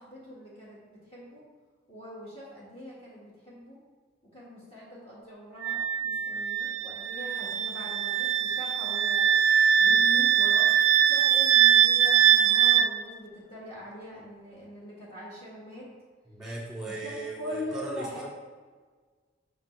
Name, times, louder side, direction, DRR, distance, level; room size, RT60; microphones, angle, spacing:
voice 1, 0.0-1.4 1.9-3.8 4.3-9.2 9.8-10.7 11.0-15.9 16.8-18.2, left 1 dB, 30° left, -7 dB, 1.6 m, -42 dB
Wind instrument woodwind instrument, 5.6-12.9, right 9 dB, 65° right, 0.4 m, -22 dB
voice 2, 16.3-18.2, right 2 dB, ahead, -7 dB, 2.2 m, -37 dB
7.2 x 6.6 x 3.3 m, 1.5 s
head